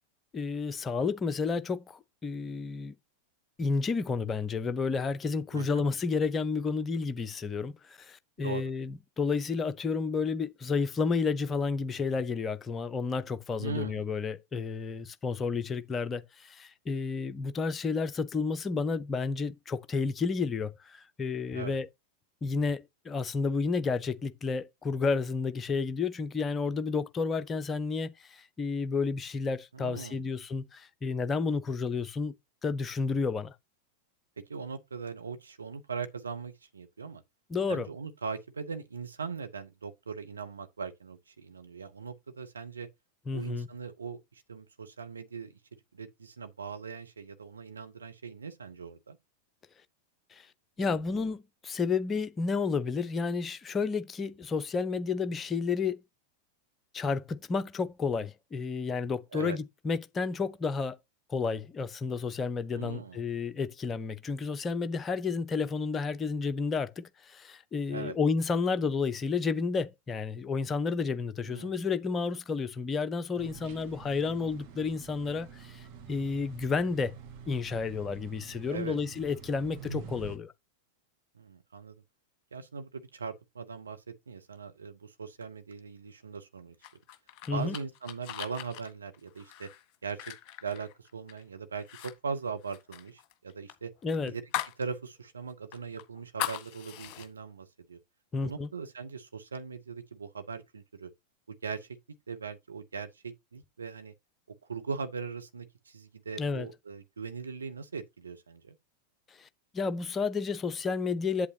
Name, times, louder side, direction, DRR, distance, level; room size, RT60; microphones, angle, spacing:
voice 1, 0.3-2.9 3.6-21.9 22.4-32.3 32.6-33.5 37.5-37.9 43.3-43.7 50.3-50.5 50.8-56.0 56.9-61.0 61.3-77.1 77.5-80.5 87.5-87.8 94.0-94.3 98.3-98.7 106.4-106.7 109.4-109.5 109.7-111.5, left 4 dB, 20° left, 0.7 m, -31 dB
voice 2, 5.5-5.8 8.4-8.6 13.6-14.1 21.5-21.8 29.7-30.3 34.4-37.2 37.7-42.9 43.3-45.5 45.9-49.2 59.3-59.6 62.7-63.2 67.9-68.2 71.4-71.8 78.7-79.0 81.3-81.9 82.5-86.7 87.5-89.7 90.0-90.3 90.6-93.9 94.3-94.4 94.8-98.0 98.4-101.1 101.5-101.9 102.3-104.1 104.7-108.7, right 5 dB, 75° right, 0.9 m, -40 dB
sound 1, 73.4-80.4, right 5 dB, 40° right, 1.8 m, -46 dB
sound 2, 86.8-91.4 91.8-92.1 92.4-94.8 95.2-95.3 95.7-97.3, left 12 dB, 40° left, 1.5 m, -39 dB
8.2 x 8.0 x 2.8 m
figure-of-eight pair, 90°, 0 cm